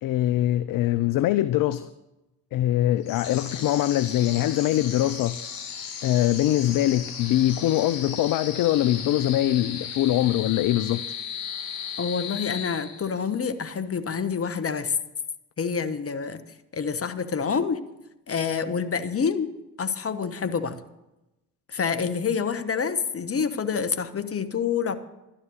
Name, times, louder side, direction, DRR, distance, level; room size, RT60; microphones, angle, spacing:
voice 1, 0.0-1.9 2.5-5.4 6.0-11.0, left 13 dB, 50° left, 0.6 m, -23 dB
sound 1, 3.0-13.3, left 7 dB, 80° left, 2.0 m, -36 dB
voice 2, 12.0-14.9 15.6-16.4 16.7-17.8 18.3-19.5 19.8-20.8 21.7-25.0, left 6 dB, 30° left, 1.2 m, -27 dB
12.0 x 10.0 x 6.5 m
figure-of-eight pair, 45°, 44 cm